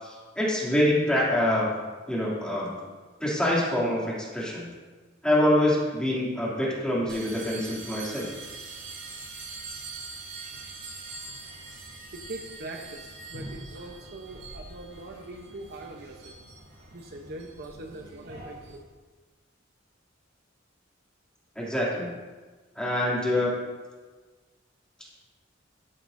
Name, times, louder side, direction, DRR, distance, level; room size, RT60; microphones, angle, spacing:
voice 1, 0.0-1.7 2.1-2.7 3.2-4.7 5.2-8.3 21.6-22.1 22.8-23.5, left 1 dB, 5° left, -7 dB, 2.7 m, -25 dB
sound 1, 7.1-18.8, right 3 dB, 75° right, 3.0 m, -43 dB
voice 2, 12.1-16.3 16.9-18.8, right 2 dB, 55° right, 2 dB, 0.8 m, -42 dB
12.5 x 9.9 x 2.6 m, 1.4 s
head